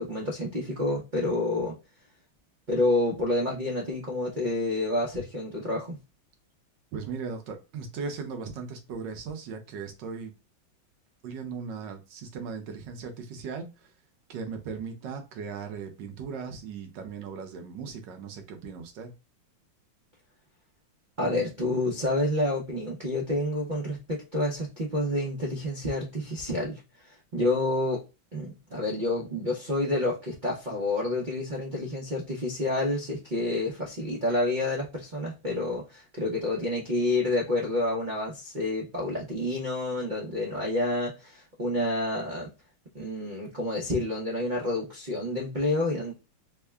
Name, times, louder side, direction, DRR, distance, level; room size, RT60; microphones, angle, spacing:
voice 1, 0.0-1.8 2.7-6.0 21.2-28.0 28.3-42.5 42.9-46.1, left 2 dB, 85° right, 0.4 m, -29 dB
voice 2, 6.9-10.3 11.2-13.9 14.3-19.1, right 5 dB, 70° right, 1.2 m, -38 dB
3.6 x 2.2 x 3.3 m
omnidirectional pair, 2.2 m